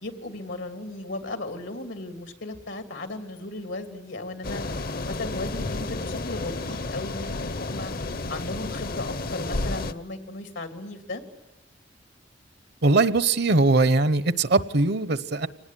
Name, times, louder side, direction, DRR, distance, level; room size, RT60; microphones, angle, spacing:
voice 1, 0.0-4.6 5.1-7.9 8.3-11.2, left 2 dB, 85° left, 6 dB, 2.9 m, -36 dB
sound 1, 4.4-9.9, left 2 dB, 55° left, 0.9 m, -31 dB
voice 2, 12.8-15.5, right 3 dB, 60° right, 15 dB, 0.9 m, -21 dB
25.5 x 19.0 x 9.9 m, 1.0 s
head